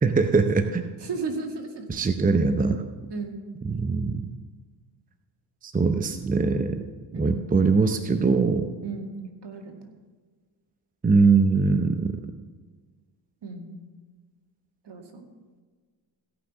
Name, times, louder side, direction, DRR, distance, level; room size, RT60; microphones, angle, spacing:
voice 1, 0.0-0.9 1.9-2.8 3.6-4.2 5.6-6.8 7.1-8.7 11.0-12.2, right 4 dB, 15° right, 8 dB, 0.7 m, -22 dB
voice 2, 1.0-1.9 3.1-3.4 7.1-7.5 8.8-9.8 13.4-13.8 14.8-15.3, right 4 dB, 55° right, 3 dB, 2.2 m, -35 dB
16.5 x 5.9 x 6.2 m, 1.4 s
supercardioid pair, 60°, 48 cm